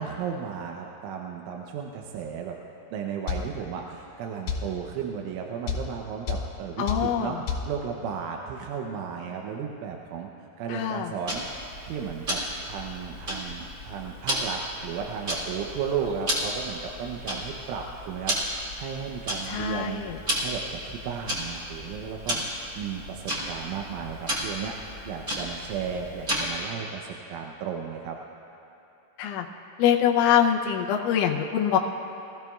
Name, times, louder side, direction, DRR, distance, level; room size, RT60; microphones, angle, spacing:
voice 1, 0.0-2.6 2.9-7.4 7.7-10.3 10.6-12.4 12.7-20.1 20.4-24.7 25.0-28.2, right 7 dB, 80° right, 1 dB, 3.1 m, -34 dB
sound 1, 3.3-3.5 4.5-4.7 5.7-5.9 6.3-6.5 6.9-7.1 7.5-7.7, left 6 dB, 65° left, 3.4 m, -28 dB
voice 2, 6.8-7.3 10.7-11.1 19.5-20.2 29.2-29.5 29.8-31.8, left 9 dB, 80° left, 2 dB, 3.1 m, -24 dB
Tick-tock, 11.3-26.7, equal, 25° right, 2.3 m, -33 dB
23.5 x 15.5 x 2.3 m, 2.9 s
omnidirectional pair, 5.7 m